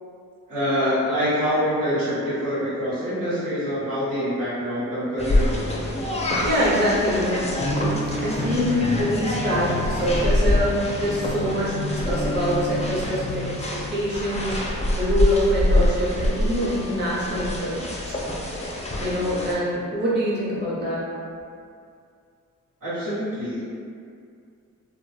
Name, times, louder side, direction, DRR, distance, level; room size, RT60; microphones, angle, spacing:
voice 1, 0.5-5.7 22.8-23.6, equal, 80° right, -12 dB, 1.1 m, -25 dB
sound 1, 5.2-19.5, left 1 dB, 20° left, 0.4 m, -25 dB
voice 2, 6.4-7.5 8.2-13.5 13.9-17.9 18.2-18.3 19.0-21.1, equal, 30° right, -8 dB, 0.8 m, -24 dB
2.2 x 2.0 x 3.1 m, 2.3 s
cardioid pair, 45°, 34 cm